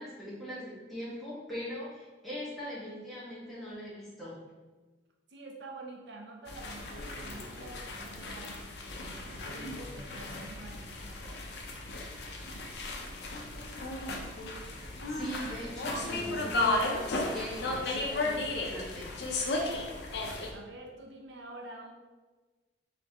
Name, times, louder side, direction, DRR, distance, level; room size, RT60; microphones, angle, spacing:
voice 1, 0.0-4.4 15.0-19.1, equal, ahead, -10 dB, 1.4 m, -41 dB
voice 2, 5.3-8.5 9.0-11.4 20.5-21.9, right 2 dB, 65° right, 1 dB, 0.5 m, -48 dB
sound 1, 6.5-20.5, left 2 dB, 60° left, 0.6 m, -35 dB
4.1 x 3.1 x 2.9 m, 1.3 s
head